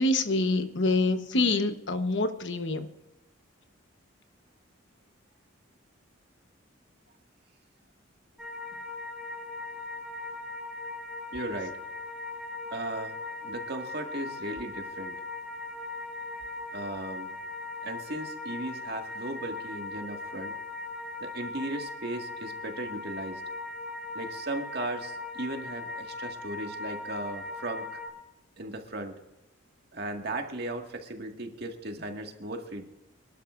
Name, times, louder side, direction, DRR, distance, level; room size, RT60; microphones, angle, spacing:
voice 1, 0.0-2.9, left 2 dB, 65° left, 9 dB, 1.1 m, -26 dB
sound 1, 8.4-28.1, left 3 dB, 5° right, 1.8 m, -39 dB
voice 2, 11.3-11.8 12.7-13.2 13.4-15.2 16.7-17.3 17.8-20.6 21.2-23.4 24.1-28.0 28.6-29.2 29.9-32.8, right 2 dB, 55° right, 3 dB, 1.9 m, -36 dB
26.0 x 11.5 x 2.6 m, 0.94 s
head